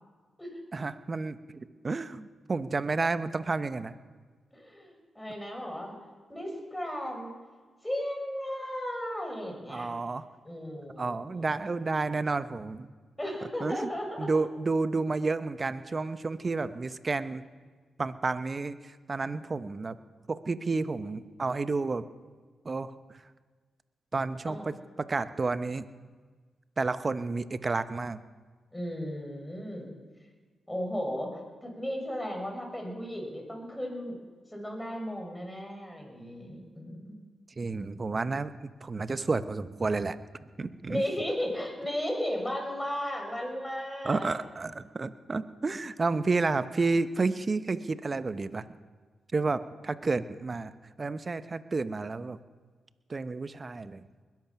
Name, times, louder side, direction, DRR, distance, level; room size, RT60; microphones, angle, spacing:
voice 1, 0.7-3.9 9.7-10.3 11.0-12.9 13.6-13.9 14.2-17.4 18.0-20.0 20.3-22.1 22.6-22.9 24.1-25.9 26.8-28.2 37.6-40.2 40.6-41.0 44.0-48.6 49.3-50.7 51.0-52.4 53.1-54.1, right 3 dB, 40° right, 12 dB, 0.9 m, -31 dB
voice 2, 4.5-5.9 6.3-7.3 7.8-9.9 10.4-11.5 13.2-14.3 24.5-24.6 28.7-29.9 30.7-34.2 34.5-36.9 40.9-44.3, equal, 15° left, 2 dB, 6.3 m, -35 dB
21.0 x 11.0 x 6.0 m, 1.4 s
supercardioid pair, 40°, 0 cm